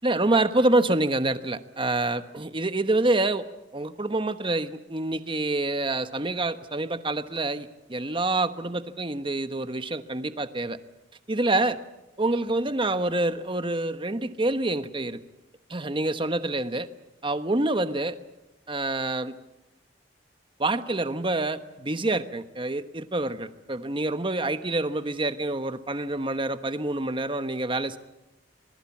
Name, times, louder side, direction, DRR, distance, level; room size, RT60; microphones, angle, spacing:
voice 1, 0.0-3.4 3.7-10.8 11.3-11.8 12.2-15.2 15.7-16.9 17.2-18.2 18.7-19.3 20.6-28.0, right 2 dB, 30° right, 10 dB, 1.2 m, -27 dB
26.5 x 20.5 x 7.3 m, 0.97 s
head